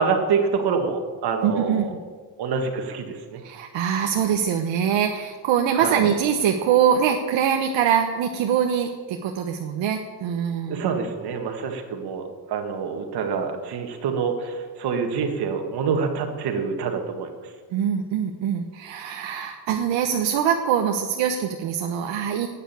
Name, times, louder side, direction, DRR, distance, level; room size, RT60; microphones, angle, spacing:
voice 1, 0.0-1.9 2.4-3.4 5.7-6.0 10.7-17.3, right 5 dB, 55° right, 4 dB, 2.0 m, -26 dB
voice 2, 1.4-1.8 3.4-10.8 17.7-22.5, right 8 dB, 75° right, 3 dB, 1.2 m, -23 dB
11.5 x 9.2 x 9.3 m, 1.5 s
cardioid pair, 180°, 46 cm